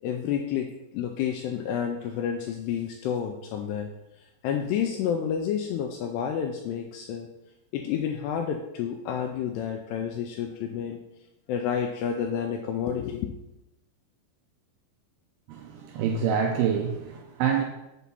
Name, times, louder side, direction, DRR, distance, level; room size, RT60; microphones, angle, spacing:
voice 1, 0.0-3.9 4.4-7.3 7.7-11.0 11.5-13.3, left 8 dB, 85° left, 4 dB, 2.4 m, -30 dB
voice 2, 15.5-17.6, right 7 dB, 85° right, 2 dB, 2.4 m, -26 dB
7.5 x 7.0 x 4.2 m, 0.92 s
omnidirectional pair, 5.4 m